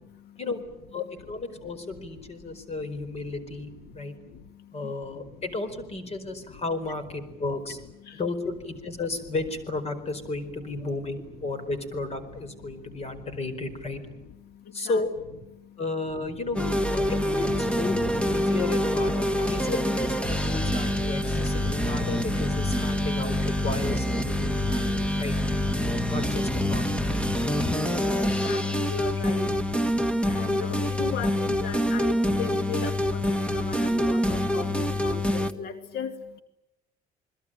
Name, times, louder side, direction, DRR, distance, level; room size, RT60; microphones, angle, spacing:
voice 1, 0.9-4.2 4.7-7.8 8.2-14.0 14.7-15.1 15.8-16.6 16.9-18.0 18.2-25.3 26.1-26.9, left 3 dB, 40° left, 12 dB, 4.6 m, -33 dB
voice 2, 3.9-5.3 8.0-8.2 12.7-13.0 14.5-15.0 15.6-15.8 16.3-16.7 19.2-19.3 24.4-24.5 24.9-25.2 25.8-26.1 26.9-36.4, left 6 dB, 75° left, 9 dB, 2.4 m, -39 dB
sound 1, 16.5-35.5, left 1 dB, 5° left, 1.6 m, -26 dB
29.0 x 21.0 x 9.1 m, 0.89 s
cardioid pair, 110°, 17 cm